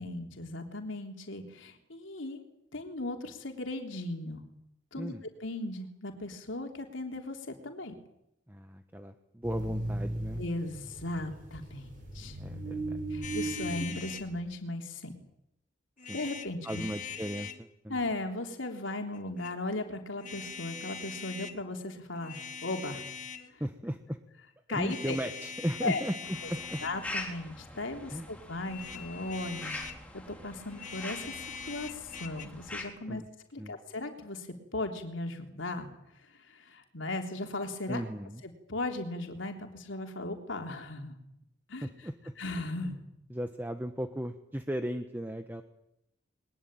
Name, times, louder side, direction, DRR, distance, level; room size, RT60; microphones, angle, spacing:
voice 1, 0.0-2.4 2.7-4.4 4.9-5.1 5.4-7.9 10.4-11.9 12.1-12.4 13.1-15.1 16.1-16.8 17.9-23.0 23.5-23.6 24.7-25.2 25.8-26.0 26.8-29.8 30.3-31.3 31.6-33.2 33.5-34.5 34.7-35.9 36.5-38.0 38.7-41.2 41.7-41.9 42.4-43.0, left 2 dB, 85° left, 4 dB, 3.5 m, -37 dB
voice 2, 8.5-10.4 12.4-13.0 16.1-16.2 16.6-18.0 23.6-24.2 24.7-26.8 28.1-28.3 33.1-33.3 33.6-33.8 37.9-38.4 41.8-42.3 43.3-45.6, equal, 10° right, 7 dB, 1.2 m, -36 dB
sound 1, 9.4-14.4, right 1 dB, 45° right, 7.0 m, -37 dB
sound 2, 13.2-14.3 16.0-17.6 19.1-19.5 20.2-21.6 22.1-23.5 24.8-27.3 28.6-30.0 30.7-32.5, left 6 dB, 40° left, 1.7 m, -42 dB
sound 3, 26.2-32.8, left 2 dB, 5° left, 4.3 m, -44 dB
22.0 x 21.0 x 9.1 m, 0.81 s
head